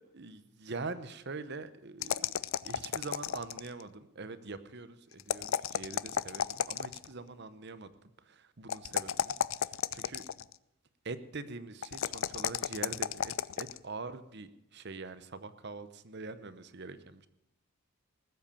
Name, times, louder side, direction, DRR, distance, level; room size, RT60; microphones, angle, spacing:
voice 1, 0.0-2.3 2.6-9.3 9.9-10.5 11.0-17.3, right 3 dB, 50° right, 13 dB, 0.9 m, -44 dB
sound 1, 2.0-3.8 5.2-7.1 8.7-10.5 11.8-13.8, left 8 dB, 65° left, 0.4 m, -33 dB
19.5 x 8.0 x 7.1 m, 0.82 s
head